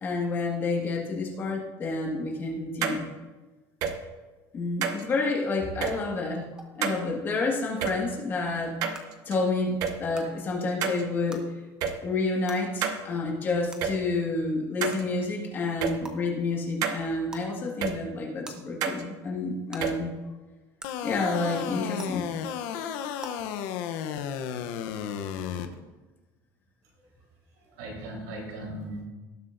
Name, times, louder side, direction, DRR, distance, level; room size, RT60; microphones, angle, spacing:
voice 1, 0.0-3.1 4.5-6.5 6.8-11.5 12.0-20.1 21.0-22.3, left 3 dB, 25° left, 0 dB, 1.8 m, -29 dB
sound 1, 2.8-3.0 3.8-3.9 4.8-5.0 5.8-5.9 6.8-7.0 7.8-7.9 8.8-9.3 9.8-9.9 10.8-11.0 11.8-11.9 12.8-13.0 13.8-13.9 14.8-15.0 15.8-15.9 16.8-17.0 17.8-17.9 18.8-19.0 19.8-19.9, right 7 dB, 45° right, 0.9 m, -28 dB
sound 2, 6.6-6.7 7.8-7.9 8.9-9.0 10.1-10.2 11.3-11.4 12.5-12.6 13.7-13.8 14.9-15.0 16.0-16.1 17.3-17.5 18.4-18.5 19.7-19.8 20.8-20.9 22.0-22.1 23.2-23.3, right 2 dB, 10° right, 0.8 m, -42 dB
sound 3, 20.8-25.7, left 9 dB, 70° left, 0.8 m, -33 dB
voice 2, 27.6-29.0, right 1 dB, 85° right, -2 dB, 3.9 m, -38 dB
18.5 x 7.7 x 2.6 m, 1.2 s
cardioid pair, 180°, 8 cm